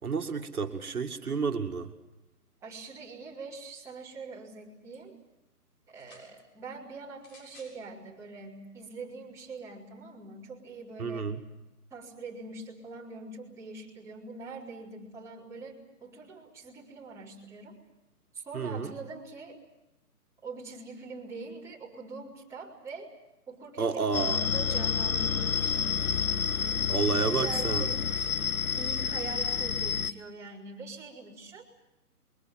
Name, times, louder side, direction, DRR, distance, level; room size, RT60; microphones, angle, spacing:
voice 1, 0.0-1.9 11.0-11.4 18.5-18.9 23.8-24.4 26.9-27.9, right 5 dB, 65° right, 4 dB, 2.2 m, -30 dB
voice 2, 2.6-5.2 5.9-11.3 11.9-17.8 18.3-19.6 20.4-23.1 23.5-26.2 27.2-28.3 28.7-31.6, right 3 dB, 5° right, -7 dB, 4.2 m, -43 dB
sound 1, 5.9-6.3 7.2-7.8 8.7-8.8, left 1 dB, 35° left, 7.5 m, -55 dB
sound 2, 24.1-30.1, left 7 dB, 60° left, 1.2 m, -29 dB
27.0 x 23.0 x 7.7 m, 0.94 s
figure-of-eight pair, 150°, 46 cm